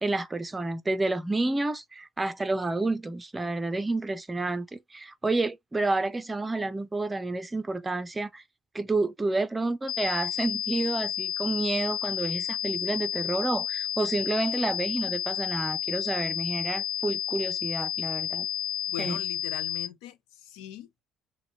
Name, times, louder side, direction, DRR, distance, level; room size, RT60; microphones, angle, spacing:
voice 1, 0.0-8.4 8.7-18.5 19.0-19.2, right 2 dB, 15° right, 0.6 m, -29 dB
sound 1, 9.9-19.9, left 10 dB, 50° left, 0.4 m, -31 dB
voice 2, 18.9-21.0, left 11 dB, 90° left, 1.0 m, -41 dB
6.3 x 2.2 x 3.0 m
cardioid pair, 145°, 0 cm